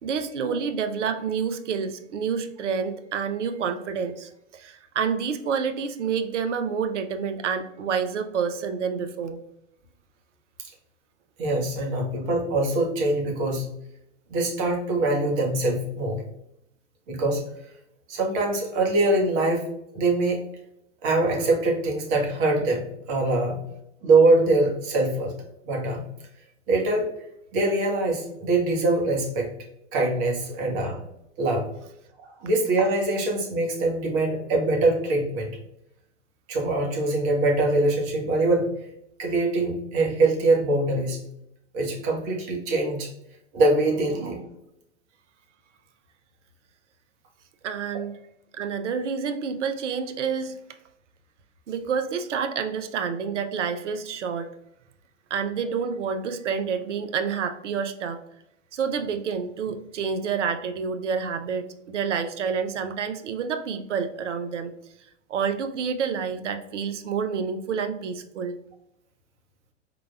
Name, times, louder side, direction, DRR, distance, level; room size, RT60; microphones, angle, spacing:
voice 1, 0.0-9.4 47.6-48.1 48.5-50.6 51.7-54.5 55.3-58.2 58.7-64.7 65.3-68.6, right 6 dB, 70° right, 9 dB, 0.6 m, -28 dB
voice 2, 11.4-13.7 14.3-16.2 17.1-17.4 18.1-19.6 19.9-20.4 21.0-22.8 23.1-23.6 24.0-25.3 25.6-26.0 26.7-27.1 27.5-29.5 29.9-31.0 31.4-31.7 32.2-35.5 36.5-38.7 39.2-41.2 41.7-43.1 43.5-44.4, right 2 dB, 45° right, 0 dB, 1.3 m, -23 dB
4.7 x 3.9 x 2.2 m, 0.79 s
figure-of-eight pair, 100°, 37 cm